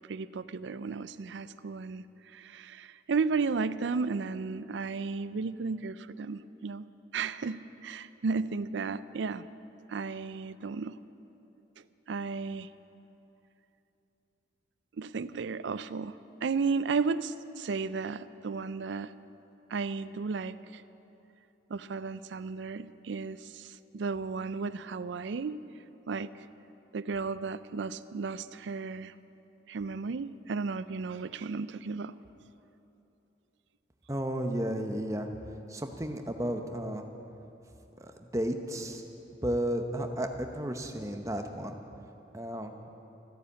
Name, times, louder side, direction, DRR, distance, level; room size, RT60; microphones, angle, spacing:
voice 1, 0.1-2.0 2.3-6.8 7.1-9.5 9.9-11.0 12.1-12.7 15.0-16.1 16.4-19.1 19.7-20.8 21.7-25.6 26.1-26.3 26.9-29.1 29.7-32.2, right 4 dB, 75° right, 15 dB, 0.4 m, -34 dB
voice 2, 34.1-35.3 35.7-37.1 38.0-39.0 39.4-41.8 42.3-42.7, equal, 15° right, 5 dB, 0.8 m, -33 dB
14.0 x 10.0 x 8.4 m, 3.0 s
head